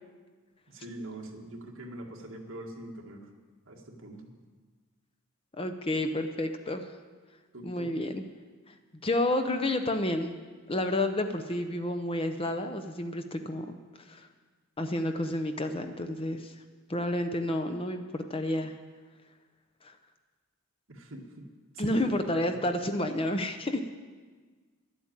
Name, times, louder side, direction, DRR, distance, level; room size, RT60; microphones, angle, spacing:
voice 1, 0.7-3.3 3.7-4.3 7.5-8.0 20.9-21.5 21.7-22.7, right 1 dB, 60° right, 0 dB, 1.8 m, -43 dB
voice 2, 5.5-6.9 7.6-8.2 8.7-8.8 9.0-10.4 10.7-13.8 14.1-14.3 14.8-16.5 16.9-18.7 21.8-23.8, left 1 dB, 25° left, 7 dB, 0.6 m, -30 dB
11.5 x 8.2 x 8.7 m, 1.4 s
head